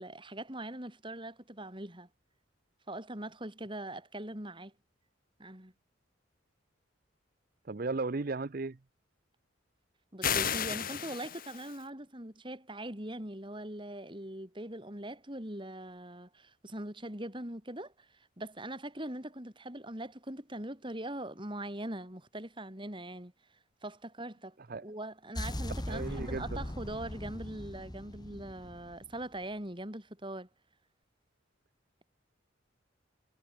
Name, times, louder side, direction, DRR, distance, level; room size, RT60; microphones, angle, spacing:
voice 1, 0.0-2.1 2.9-4.7 5.4-5.7 10.1-23.3 23.8-30.5, right 1 dB, 25° right, 3.9 m, -42 dB
voice 2, 7.7-8.8 24.7-24.8 25.9-26.6, right 3 dB, 45° right, 0.6 m, -35 dB
sound 1, 10.2-11.8, left 8 dB, 45° left, 1.7 m, -33 dB
sound 2, 25.3-29.4, left 1 dB, 20° left, 1.9 m, -40 dB
head